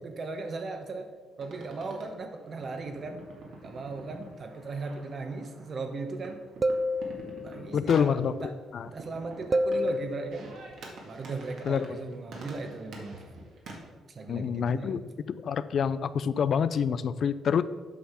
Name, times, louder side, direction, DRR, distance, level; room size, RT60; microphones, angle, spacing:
voice 1, 0.0-1.1 1.4-3.3 3.6-6.4 7.4-8.5 8.9-10.6 11.0-13.3 14.1-15.0, right 3 dB, 45° right, 6 dB, 1.2 m, -37 dB
sound 1, 1.4-13.8, right 2 dB, 70° right, 2.0 m, -47 dB
sound 2, 6.6-7.7 9.5-10.3, equal, 30° right, 0.5 m, -28 dB
voice 2, 7.7-8.3 8.7-8.9 11.7-12.0 14.3-15.0 15.4-17.6, left 7 dB, 60° left, 14 dB, 0.4 m, -27 dB
8.5 x 5.6 x 5.7 m, 1.5 s
cardioid pair, 90°, 0 cm